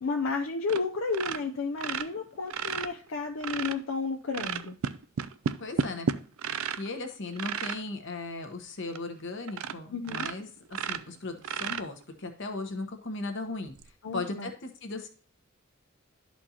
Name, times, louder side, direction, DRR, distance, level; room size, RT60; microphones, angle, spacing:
voice 1, 0.0-4.8 9.9-10.3 14.0-14.5, left 4 dB, 80° left, 2 dB, 0.6 m, -32 dB
sound 1, 0.7-0.8 1.1-3.8 4.3-6.9 7.3-7.8 8.4-8.5 8.9-9.0 9.5-9.8 10.0-12.2 13.7-13.8, right 7 dB, 90° right, 0.4 m, -33 dB
voice 2, 5.6-6.1 6.8-13.8 14.1-15.1, left 3 dB, 65° left, 5 dB, 1.1 m, -37 dB
11.5 x 4.3 x 2.8 m, 0.42 s
head